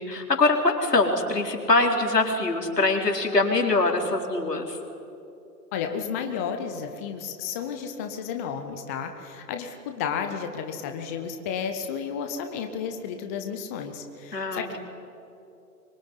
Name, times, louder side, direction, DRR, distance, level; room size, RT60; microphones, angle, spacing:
voice 1, 0.0-4.8 14.3-14.8, left 3 dB, 70° left, 2 dB, 4.3 m, -23 dB
voice 2, 5.7-14.8, left 7 dB, 10° left, 6 dB, 0.6 m, -32 dB
24.5 x 22.5 x 9.8 m, 2.7 s
figure-of-eight pair, 120°, 49 cm